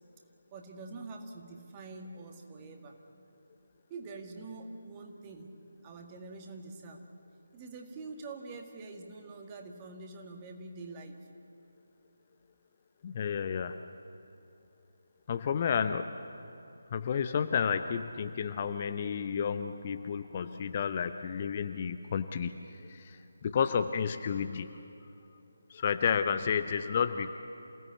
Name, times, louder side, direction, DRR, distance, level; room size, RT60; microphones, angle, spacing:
voice 1, 0.5-3.0 3.9-5.5 5.8-7.1 7.5-11.2, right 3 dB, 20° right, 3 dB, 1.9 m, -45 dB
voice 2, 13.0-13.8 15.3-16.1 16.9-24.8 25.7-27.3, left 7 dB, 30° left, 9 dB, 0.7 m, -31 dB
28.0 x 17.0 x 8.4 m, 2.9 s
figure-of-eight pair, 150°, 0 cm